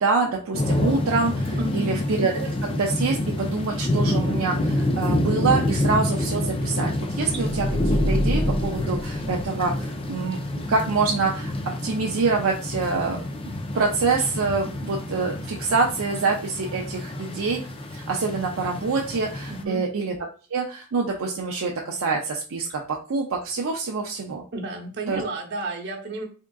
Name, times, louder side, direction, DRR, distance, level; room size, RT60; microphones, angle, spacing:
voice 1, 0.0-10.4 10.7-11.5 11.8-13.2 13.7-17.6 17.9-20.2 20.5-24.4 25.1-25.2, right 4 dB, 70° right, 0 dB, 0.5 m, -26 dB
sound 1, 0.5-19.6, left 1 dB, 25° left, 0.4 m, -27 dB
voice 2, 1.5-2.0 19.5-19.8 24.5-26.3, right 2 dB, 50° right, 0 dB, 0.8 m, -32 dB
sound 2, 7.2-9.8, equal, 10° right, 0.9 m, -28 dB
3.6 x 3.6 x 2.3 m, 0.36 s
head